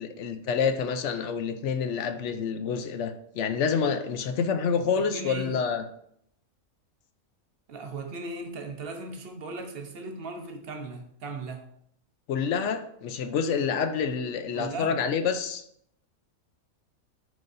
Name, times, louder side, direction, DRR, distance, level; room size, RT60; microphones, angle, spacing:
voice 1, 0.0-5.8 12.3-15.6, left 6 dB, 65° left, 8 dB, 0.8 m, -28 dB
voice 2, 4.9-5.6 7.7-11.7 14.1-14.2 14.5-15.0, right 3 dB, 50° right, 5 dB, 0.8 m, -38 dB
9.4 x 4.0 x 2.6 m, 0.70 s
omnidirectional pair, 1.5 m